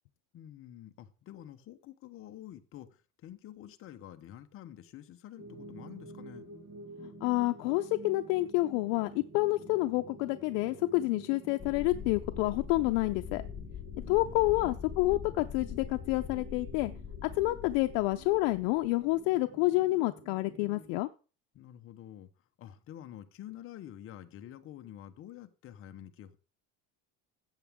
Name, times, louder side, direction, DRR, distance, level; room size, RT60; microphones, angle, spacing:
voice 1, 0.3-6.5 14.0-14.8 21.5-22.3 22.6-26.4, left 11 dB, 35° left, 1.0 m, -48 dB
sound 1, 5.4-21.0, right 3 dB, 25° right, 1.6 m, -50 dB
voice 2, 7.2-13.4 14.1-16.9 17.2-21.1, left 19 dB, 80° left, 0.7 m, -29 dB
sound 2, 11.6-19.2, left 8 dB, 20° left, 0.5 m, -43 dB
14.5 x 8.3 x 3.6 m
cardioid pair, 170°, 37 cm